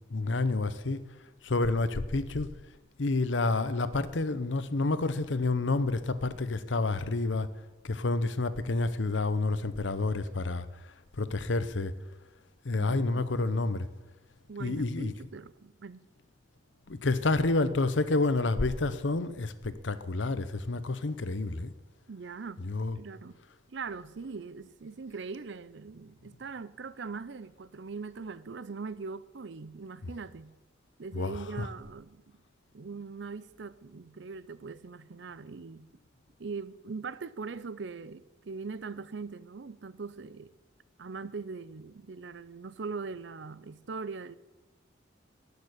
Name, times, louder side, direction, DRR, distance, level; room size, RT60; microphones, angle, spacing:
voice 1, 0.1-1.0 1.4-2.5 3.0-7.5 7.8-10.7 11.2-11.9 12.6-13.9 14.6-15.1 16.9-21.7 22.6-23.0 31.1-31.7, left 3 dB, 75° left, 0.8 m, -29 dB
voice 2, 12.7-13.3 14.5-16.1 22.1-22.7 23.0-23.4 23.7-30.6 31.0-32.4 32.7-35.9 36.4-40.5 41.0-44.3, right 4 dB, 65° right, 0.6 m, -41 dB
13.0 x 6.9 x 10.0 m
head